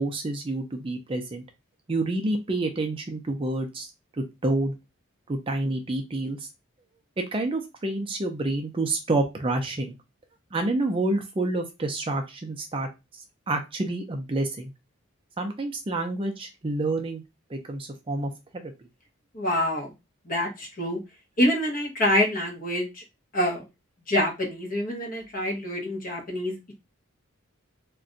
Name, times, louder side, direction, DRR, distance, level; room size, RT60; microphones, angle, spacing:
voice 1, 0.0-1.4 1.9-3.9 4.2-4.7 5.3-6.5 7.2-9.9 10.5-14.7 15.4-17.2 17.5-18.7, right 2 dB, 25° right, 4 dB, 0.4 m, -28 dB
voice 2, 19.3-19.9 20.3-21.0 21.4-23.0 23.3-23.7 24.1-26.7, left 1 dB, 40° left, 0 dB, 0.9 m, -26 dB
2.5 x 2.2 x 3.8 m, 0.24 s
head